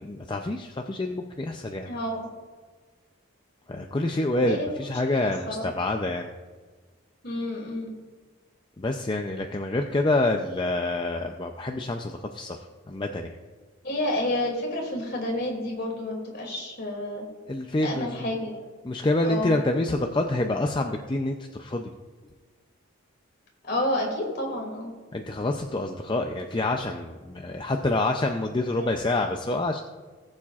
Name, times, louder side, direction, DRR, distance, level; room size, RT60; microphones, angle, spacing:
voice 1, 0.0-1.9 3.7-6.3 8.8-13.4 17.5-18.3 18.8-21.9 25.1-29.8, left 2 dB, 25° left, 4 dB, 0.5 m, -27 dB
voice 2, 1.9-2.3 4.4-4.7 5.2-5.7 7.2-7.9 13.8-17.2 17.8-18.6 19.2-19.6 23.6-24.9 28.8-28.9, left 1 dB, 50° left, 0 dB, 2.5 m, -30 dB
19.0 x 7.3 x 2.4 m, 1.4 s
head